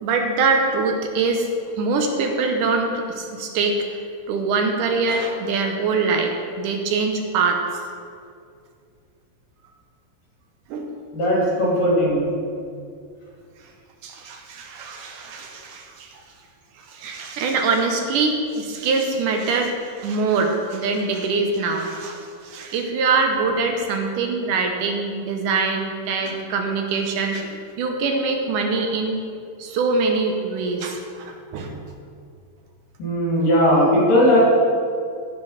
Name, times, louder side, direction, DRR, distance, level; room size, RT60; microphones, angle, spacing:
voice 1, 0.0-1.5 1.8-3.9 4.3-7.6 10.7-10.9 14.0-16.2 16.8-29.2 29.6-31.8, right 4 dB, 75° right, 3 dB, 2.3 m, -23 dB
voice 2, 11.1-12.2 33.0-34.4, equal, 75° left, -5 dB, 4.5 m, -18 dB
15.0 x 5.2 x 5.6 m, 2.3 s
omnidirectional pair, 3.9 m